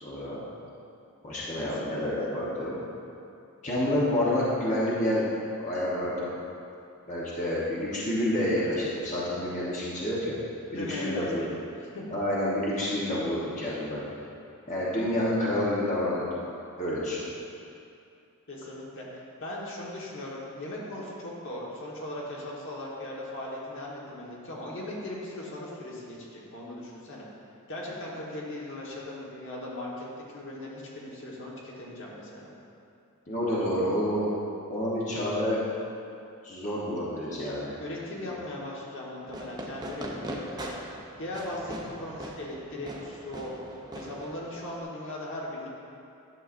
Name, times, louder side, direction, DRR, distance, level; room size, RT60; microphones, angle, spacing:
voice 1, 0.0-0.4 1.2-2.8 3.6-5.2 5.6-6.3 7.1-10.4 10.7-11.4 12.1-14.0 14.7-16.3 16.8-17.2 33.3-34.3 34.7-35.6 36.4-37.7, left 1 dB, 35° left, -7 dB, 1.1 m, -28 dB
voice 2, 1.6-2.3 10.7-11.6 11.9-12.0 18.5-27.2 27.7-30.1 30.3-32.5 37.8-40.7 41.2-43.5 43.9-45.7, left 1 dB, 60° left, -4 dB, 1.3 m, -38 dB
Fireworks, 39.3-44.8, right 1 dB, 20° right, 0.5 m, -41 dB
11.0 x 6.7 x 2.5 m, 2.6 s
head